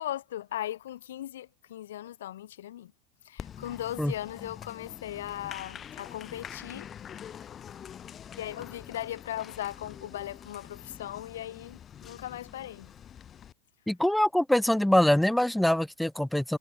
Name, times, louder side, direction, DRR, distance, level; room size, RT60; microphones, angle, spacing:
voice 1, 0.0-2.9 3.2-6.9 8.4-12.9, left 12 dB, 70° left, 0.8 m, -38 dB
Applause, 3.4-13.5, left 9 dB, 30° left, 3.6 m, -45 dB
voice 2, 13.9-16.6, left 1 dB, 5° left, 1.3 m, -24 dB
figure-of-eight pair, 85°, 0 cm